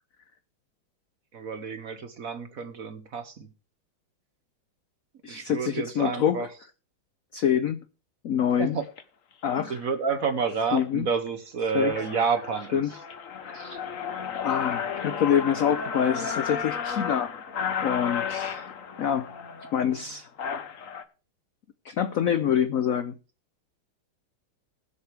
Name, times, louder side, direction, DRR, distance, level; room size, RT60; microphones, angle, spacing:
voice 1, 1.3-3.5 5.3-6.5 8.6-8.8 9.6-12.8, right 5 dB, 50° right, 1.2 m, -29 dB
voice 2, 5.2-6.5 7.3-7.8 8.2-8.8 9.4-9.7 10.7-11.1 11.7-11.9 12.7-13.0 13.4-13.8 14.3-17.3 17.8-18.7 19.0-19.3 19.7-20.3 21.8-23.1, left 9 dB, 75° left, 0.7 m, -26 dB
sound 1, 8.8-9.0 9.7-9.9 10.4-10.8 11.3-11.4 11.6-21.0, left 7 dB, 50° left, 1.2 m, -33 dB
20.5 x 7.0 x 3.3 m
omnidirectional pair, 2.3 m